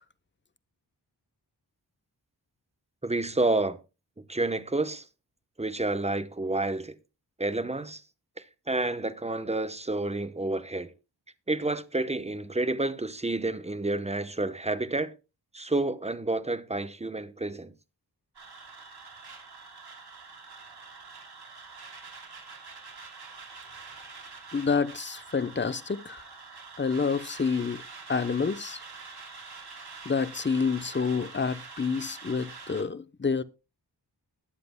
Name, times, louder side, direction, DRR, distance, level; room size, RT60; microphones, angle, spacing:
voice 1, 3.0-3.8 4.3-5.1 5.6-7.0 7.4-8.0 8.4-10.9 11.5-15.1 15.5-17.7, right 2 dB, 15° right, 0.9 m, -29 dB
sound 1, 18.3-32.8, right 4 dB, 65° right, 2.9 m, -45 dB
voice 2, 24.5-26.2 26.8-27.8 28.1-28.8 30.1-33.4, left 5 dB, 25° left, 0.8 m, -28 dB
21.0 x 7.7 x 2.2 m
cardioid pair, 55°, 42 cm